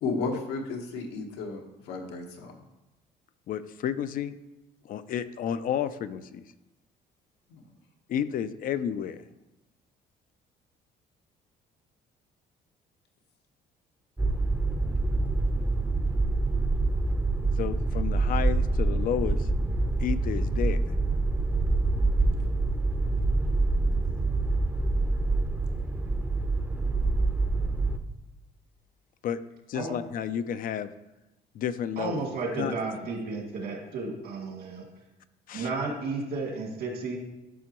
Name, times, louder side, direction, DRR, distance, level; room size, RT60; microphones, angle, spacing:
voice 1, 0.0-1.6 1.9-2.6 7.5-7.6, left 4 dB, 90° left, 2 dB, 1.3 m, -33 dB
voice 2, 3.5-4.4 4.8-6.4 8.1-9.2 17.6-19.5 20.0-20.8 29.2-29.4 29.7-30.9 31.5-32.2 32.5-32.7 35.5-35.7, left 9 dB, 55° left, 13 dB, 0.4 m, -31 dB
sound 1, 14.2-28.0, right 2 dB, 10° right, 0.6 m, -26 dB
voice 3, 32.0-34.8 35.5-37.2, right 3 dB, 70° right, 0 dB, 2.2 m, -33 dB
11.0 x 5.9 x 3.0 m, 0.98 s
cardioid pair, 110°, 17 cm